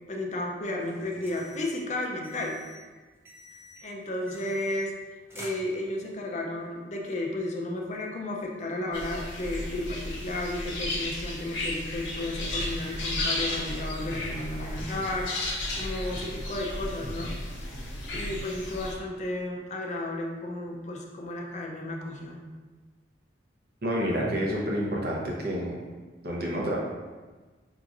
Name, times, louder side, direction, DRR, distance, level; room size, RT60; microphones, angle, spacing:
voice 1, 0.1-2.6 3.8-4.9 5.3-17.3 18.1-22.4, left 1 dB, 40° left, 0 dB, 0.5 m, -33 dB
sound 1, 0.8-1.9 2.2-2.9 3.2-3.9 4.3-5.0 5.3-6.2, left 1 dB, 15° right, 0.5 m, -48 dB
sound 2, 8.9-18.9, left 1 dB, 85° left, 0.9 m, -34 dB
voice 2, 23.8-25.8 26.2-26.8, equal, 55° right, -3 dB, 0.8 m, -29 dB
4.9 x 2.9 x 2.5 m, 1.3 s
head